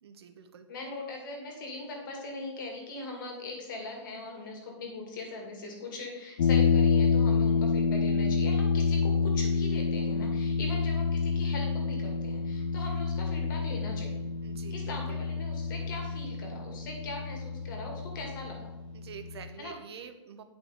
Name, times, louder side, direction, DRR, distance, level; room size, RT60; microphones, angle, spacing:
voice 1, 0.0-0.7 14.4-15.2 18.9-20.4, right 7 dB, 60° right, 9 dB, 1.0 m, -47 dB
voice 2, 0.7-14.3 14.7-18.7 19.6-19.8, left 2 dB, 45° left, 2 dB, 2.2 m, -41 dB
sound 1, 6.4-19.5, left 5 dB, 85° left, 1.0 m, -28 dB
9.5 x 5.3 x 5.1 m, 1.0 s
hypercardioid pair, 170°, 15 cm